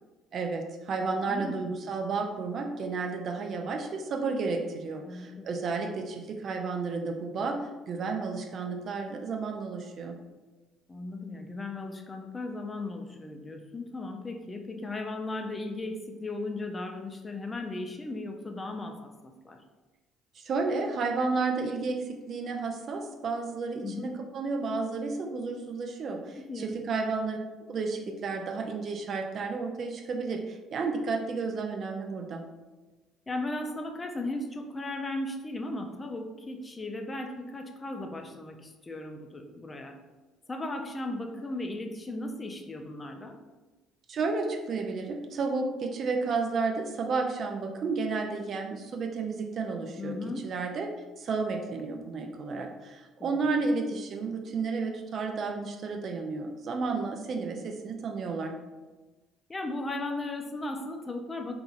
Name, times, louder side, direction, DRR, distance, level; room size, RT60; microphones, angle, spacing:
voice 1, 0.3-10.2 20.4-27.4 27.7-32.5 44.1-50.2 50.4-50.9 51.2-58.6, right 4 dB, 55° right, 3 dB, 0.4 m, -32 dB
voice 2, 1.3-1.7 5.0-5.5 10.9-19.6 23.8-24.1 26.3-26.8 33.3-40.0 40.5-43.4 50.0-50.5 53.2-53.5 59.5-61.5, left 2 dB, 25° left, 4 dB, 0.4 m, -36 dB
2.8 x 2.5 x 2.4 m, 1.2 s
hypercardioid pair, 60°, 0 cm